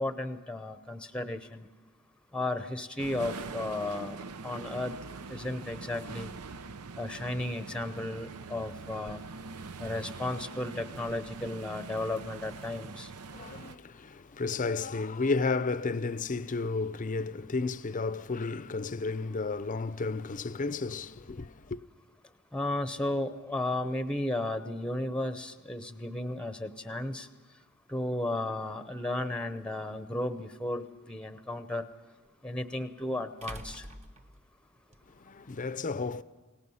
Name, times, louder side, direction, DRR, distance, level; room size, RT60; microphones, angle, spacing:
voice 1, 0.0-1.7 2.3-4.2 4.4-4.9 5.3-6.3 7.0-9.2 9.8-13.1 22.5-27.3 27.9-31.8 32.4-33.8, left 1 dB, 5° left, 0.8 m, -34 dB
sound 1, 3.0-13.8, right 4 dB, 90° right, 0.7 m, -43 dB
voice 2, 13.3-21.8 35.1-36.2, left 4 dB, 35° left, 0.6 m, -32 dB
sound 2, 29.6-29.7 32.2-32.3 33.4-35.0, right 1 dB, 30° right, 1.1 m, -45 dB
29.5 x 18.5 x 5.7 m
head